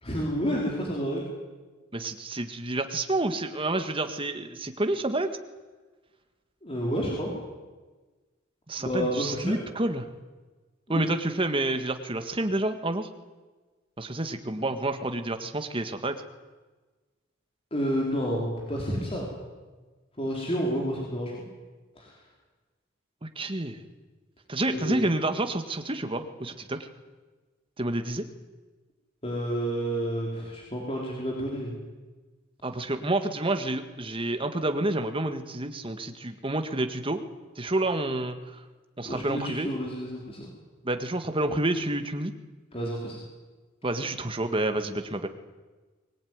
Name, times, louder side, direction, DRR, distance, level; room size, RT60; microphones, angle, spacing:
voice 1, 0.0-1.2 6.6-7.3 8.8-9.6 10.9-11.1 17.7-19.3 20.2-21.3 22.0-22.1 24.7-25.0 29.2-31.7 39.0-40.5 42.7-43.1, equal, 30° left, -2 dB, 4.6 m, -30 dB
voice 2, 1.9-5.3 8.7-10.1 10.9-13.1 14.0-16.2 23.2-23.8 24.5-26.8 27.8-28.3 32.6-37.2 37.6-38.4 39.0-39.7 40.8-42.3 43.8-45.3, right 2 dB, 25° right, 7 dB, 1.8 m, -29 dB
23.0 x 20.0 x 9.6 m, 1.3 s
head